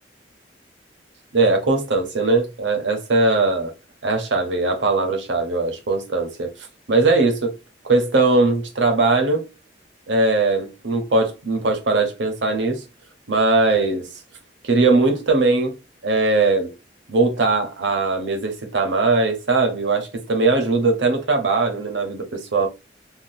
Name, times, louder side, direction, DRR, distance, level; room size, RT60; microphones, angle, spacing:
voice 1, 1.3-3.7 4.0-7.5 7.8-9.4 10.1-12.8 13.3-14.1 14.6-15.7 16.0-16.7 17.1-22.7, right 3 dB, 85° right, 0.9 m, -20 dB
3.7 x 2.3 x 2.6 m
head